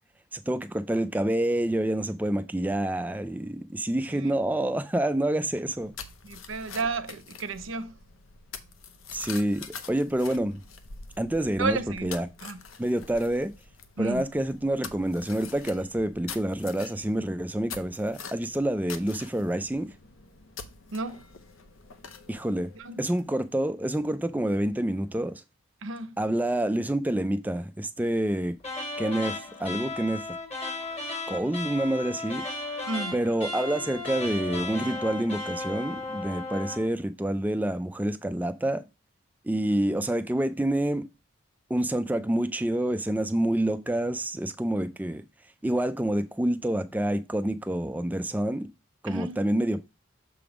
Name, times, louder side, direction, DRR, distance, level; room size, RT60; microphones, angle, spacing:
voice 1, 0.3-5.9 9.1-10.6 11.2-12.3 12.8-13.5 14.0-19.9 22.3-22.7 23.0-25.4 26.2-28.5 29.0-30.3 31.3-32.4 33.1-38.8 39.4-41.1 41.7-45.2 45.6-48.7 49.0-49.9, right 1 dB, 10° right, 0.3 m, -27 dB
sound 1, 5.6-23.5, left 5 dB, 70° left, 0.7 m, -45 dB
voice 2, 6.2-7.9 11.6-12.6 14.0-14.2 20.9-21.2 22.8-23.1 25.8-26.2 32.9-33.2 49.1-49.4, right 3 dB, 70° right, 0.7 m, -32 dB
sound 2, 28.6-36.9, left 2 dB, 30° left, 1.5 m, -35 dB
6.8 x 3.5 x 4.9 m
head